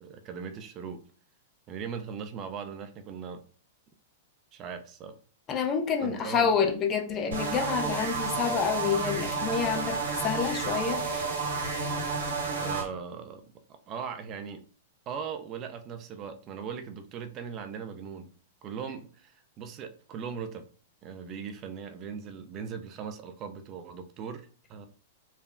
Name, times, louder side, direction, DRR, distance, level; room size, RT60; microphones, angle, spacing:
voice 1, 0.0-1.0 1.7-3.4 4.5-5.2 6.0-6.5 12.6-13.4 13.7-14.6 15.1-18.3 18.6-20.6 21.0-24.9, right 6 dB, 35° right, 0.3 m, -39 dB
voice 2, 5.5-11.3, left 6 dB, 30° left, 0.5 m, -28 dB
sound 1, 7.3-12.8, right 4 dB, 75° right, 1.0 m, -31 dB
3.2 x 2.0 x 2.4 m
hypercardioid pair, 105°, 0 cm